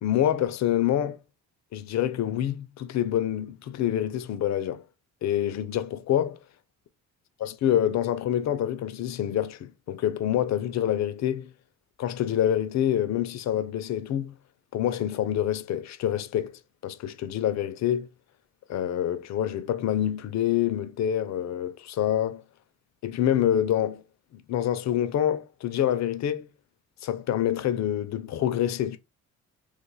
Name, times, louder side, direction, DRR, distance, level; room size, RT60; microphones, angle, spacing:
voice 1, 0.0-1.2 1.7-4.8 5.2-6.4 7.4-11.5 12.0-14.3 14.7-18.1 18.7-22.4 23.0-24.0 24.3-26.5 27.0-29.0, left 11 dB, 60° left, 0.5 m, -26 dB
2.5 x 2.4 x 3.9 m
supercardioid pair, 65°, 31 cm